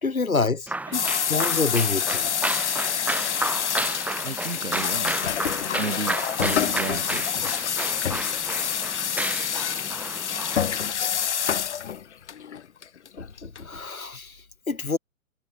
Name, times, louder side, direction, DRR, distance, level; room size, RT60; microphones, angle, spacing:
voice 1, 0.0-1.0 1.3-2.3 13.2-14.4 14.7-15.0, left 4 dB, 80° left, 2.2 m, -27 dB
sound 1, 0.7-10.9, right 2 dB, 5° right, 7.4 m, -32 dB
sound 2, 0.9-13.6, left 8 dB, 55° left, 1.5 m, -27 dB
voice 2, 4.2-5.2 5.8-7.5, right 3 dB, 75° right, 7.6 m, -34 dB
figure-of-eight pair, 120°, 42 cm